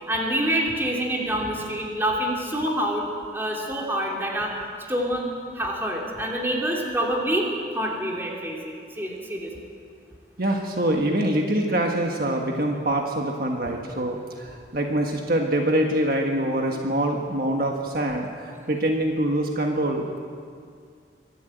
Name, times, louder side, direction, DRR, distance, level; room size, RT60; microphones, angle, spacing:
voice 1, 0.1-3.0 3.3-4.5 4.9-5.3 5.5-7.5 7.7-9.5, right 1 dB, 15° right, -1 dB, 2.9 m, -26 dB
voice 2, 10.4-20.2, right 1 dB, 55° right, 2 dB, 1.6 m, -25 dB
24.0 x 12.0 x 9.0 m, 2.2 s
head